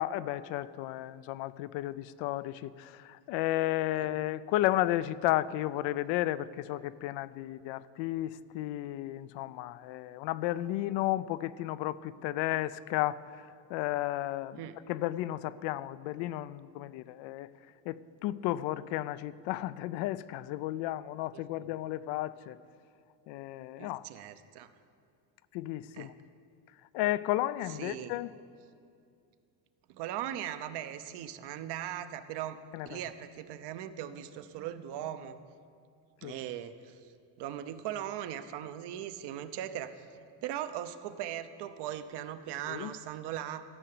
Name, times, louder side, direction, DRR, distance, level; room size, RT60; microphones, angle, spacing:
voice 1, 0.0-14.6 14.9-17.5 17.9-22.6 23.3-24.1 25.5-26.1 26.9-28.3 32.7-33.0 36.2-36.4 42.7-42.9, left 15 dB, 80° left, 0.5 m, -33 dB
voice 2, 23.8-24.7 26.0-26.1 27.8-28.1 29.9-35.4 36.2-37.0 37.4-40.0 40.4-43.6, right 11 dB, 65° right, 0.8 m, -39 dB
14.0 x 5.6 x 7.7 m
cardioid pair, 125°, 43 cm